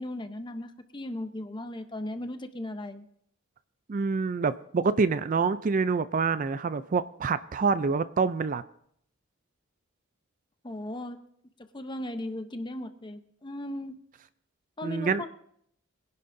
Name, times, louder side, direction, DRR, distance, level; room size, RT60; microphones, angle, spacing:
voice 1, 0.0-3.1 10.6-11.2 11.7-14.0 14.8-15.3, left 1 dB, 20° left, 8 dB, 0.7 m, -37 dB
voice 2, 3.9-8.6 14.8-15.2, right 4 dB, 40° right, 14 dB, 0.4 m, -26 dB
23.0 x 11.0 x 2.6 m, 0.69 s
head